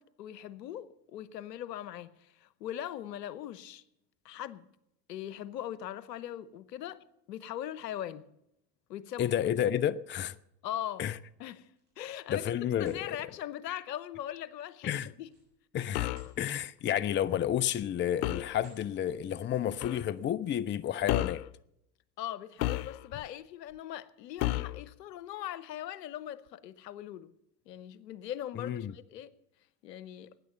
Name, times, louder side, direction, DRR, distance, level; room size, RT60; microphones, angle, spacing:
voice 1, 0.0-3.8 4.2-4.6 5.1-7.0 7.3-8.2 8.9-9.3 10.6-11.1 11.4-11.7 12.0-12.5 12.8-15.3 22.2-27.3 27.7-29.3 29.8-30.3, left 11 dB, 85° left, 0.9 m, -40 dB
voice 2, 9.2-10.4 11.0-11.1 12.3-13.2 13.7-13.8 14.8-15.1 15.7-16.1 16.4-21.4 28.6-28.9, left 10 dB, 25° left, 0.5 m, -31 dB
sound 1, 11.7-12.3 12.7-13.0 15.2-16.4 16.8-17.0 17.6-18.0 18.5-18.9, right 3 dB, 75° right, 7.9 m, -61 dB
sound 2, 15.9-16.3 18.2-18.6 19.8-20.0 21.1-21.5 22.6-23.3 24.4-24.8, left 16 dB, 65° left, 0.7 m, -32 dB
16.0 x 9.9 x 6.8 m
hypercardioid pair, 75°, 48 cm